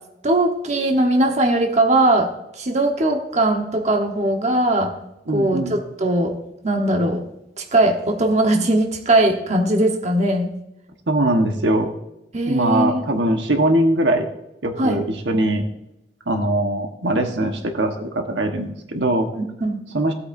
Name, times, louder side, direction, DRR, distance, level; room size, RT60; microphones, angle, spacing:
voice 1, 0.2-5.0 5.3-6.3 6.6-7.2 7.6-10.5 12.3-13.0 14.8-15.0 19.3-19.8, right 1 dB, 40° right, 3 dB, 1.1 m, -20 dB
voice 2, 5.3-5.7 11.1-11.9 12.4-14.3 14.6-15.6 16.3-19.3 19.9-20.1, right 1 dB, 85° right, 4 dB, 1.3 m, -21 dB
16.0 x 8.5 x 2.6 m, 0.88 s
head